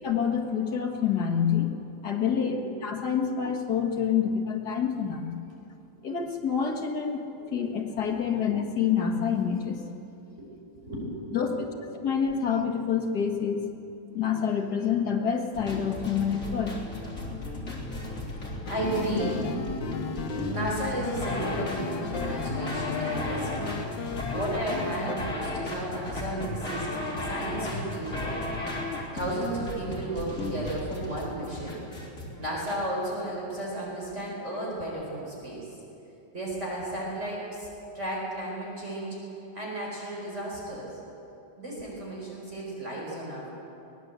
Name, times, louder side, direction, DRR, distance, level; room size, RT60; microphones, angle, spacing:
voice 1, 0.0-1.7 2.0-5.3 6.0-7.3 7.5-9.8 11.3-11.7 12.0-13.6 14.1-16.8, left 7 dB, 60° left, 3 dB, 2.3 m, -27 dB
voice 2, 10.8-11.2 18.4-23.8 24.3-28.4 29.1-31.8 32.4-35.7 36.3-37.7 37.9-39.2 39.5-40.9 41.6-43.6, right 1 dB, 40° right, -3 dB, 4.8 m, -34 dB
sound 1, 15.5-32.8, left 2 dB, 45° left, 3.9 m, -35 dB
sound 2, 18.6-25.2, left 5 dB, 85° left, 1.8 m, -35 dB
22.5 x 18.5 x 8.2 m, 3.0 s
omnidirectional pair, 2.0 m